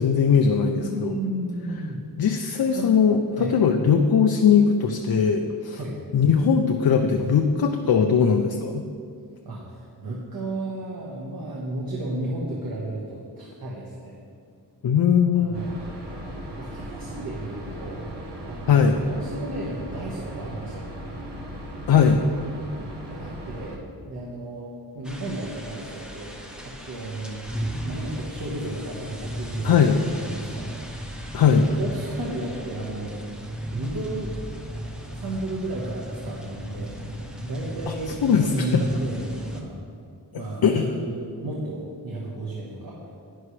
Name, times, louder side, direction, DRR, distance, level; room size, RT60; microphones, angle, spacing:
voice 1, 0.0-1.2 2.2-5.8 6.1-8.8 14.8-15.7 18.7-19.0 21.9-22.2 29.6-30.0 31.3-31.6 37.9-38.0 38.2-38.8 40.3-40.9, left 6 dB, 60° left, 5 dB, 0.5 m, -20 dB
voice 2, 0.8-2.0 2.7-2.9 3.3-3.5 5.7-5.9 9.4-14.2 15.3-15.7 16.6-18.0 18.4-20.9 23.0-23.8 24.1-24.7 24.9-27.5 27.8-31.0 31.4-33.3 33.7-34.3 35.1-37.0 37.4-39.8 40.3-43.0, right 1 dB, 60° right, -4 dB, 1.3 m, -33 dB
sound 1, 15.5-23.8, right 1 dB, 80° right, 1.5 m, -37 dB
sound 2, 25.0-39.6, equal, ahead, 0.8 m, -36 dB
11.0 x 9.9 x 3.2 m, 2.3 s
wide cardioid pair, 175°, 41 cm